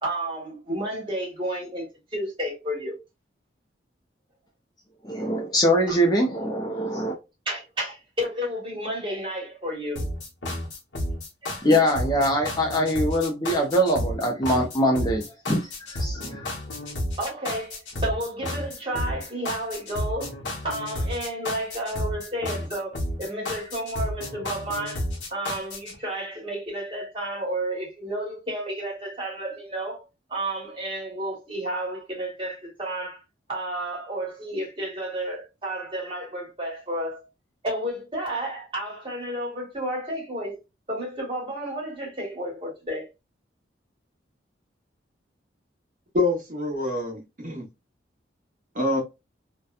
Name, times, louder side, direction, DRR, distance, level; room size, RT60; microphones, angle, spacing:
voice 1, 0.0-2.9 5.9-6.0 7.4-10.0 11.4-11.7 17.2-20.3 20.6-25.0 25.3-30.0 30.3-33.2 33.5-37.2 37.6-40.6 40.9-43.1, right 1 dB, 25° right, 1.2 m, -31 dB
voice 2, 5.0-7.2 11.6-15.6 15.9-16.5, equal, 20° left, 0.4 m, -23 dB
sound 1, 9.9-25.9, left 1 dB, 85° left, 0.9 m, -32 dB
voice 3, 46.1-47.6 48.7-49.0, left 2 dB, 45° right, 0.9 m, -26 dB
2.7 x 2.1 x 2.3 m
head